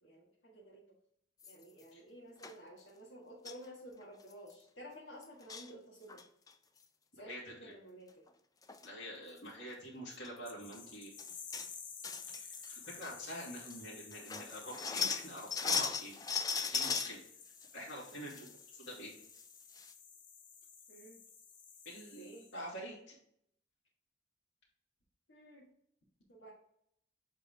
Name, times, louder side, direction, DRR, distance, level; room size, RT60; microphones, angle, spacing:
voice 1, 0.0-0.8 1.5-6.2 7.1-8.2 20.9-21.2 22.2-22.5 25.3-25.7 26.3-26.5, right 1 dB, 90° left, -5 dB, 1.7 m, -53 dB
sound 1, 1.4-1.8 2.4-2.6 3.5-3.7 4.0-4.1 4.3-4.5 5.2-5.7 6.1-6.5 8.3-8.4 8.6-8.9 9.3-9.4 10.1-10.3 10.7-10.8 11.2-11.7 12.0-12.7 13.0-13.1 13.7-13.8 14.1-17.1 17.6-18.5 18.8-18.9 19.4-19.5 19.8-19.9, left 5 dB, 20° left, 0.3 m, -37 dB
voice 2, 7.2-7.7 8.8-11.1 12.4-16.2 16.7-17.2 17.7-18.5 18.7-19.2 21.8-23.2, equal, 70° left, -4 dB, 2.4 m, -46 dB
sound 2, 10.5-22.8, left 6 dB, 45° left, 0.8 m, -52 dB
7.5 x 3.7 x 3.5 m, 0.71 s
head